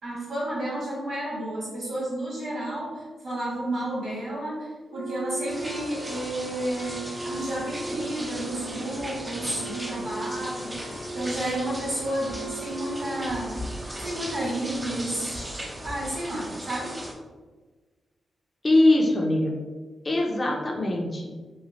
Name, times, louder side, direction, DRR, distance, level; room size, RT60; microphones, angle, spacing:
voice 1, 0.0-13.6 14.0-17.0, right 1 dB, 80° right, -12 dB, 1.5 m, -31 dB
Wind instrument woodwind instrument, 4.9-13.7, right 2 dB, 90° left, 0.6 m, -39 dB
sound 1, 5.5-17.1, right 1 dB, 30° right, 0.6 m, -37 dB
voice 2, 18.6-19.5 20.0-21.5, left 1 dB, 40° left, -1 dB, 0.7 m, -22 dB
3.1 x 2.4 x 2.6 m, 1.3 s
supercardioid pair, 40°, 0 cm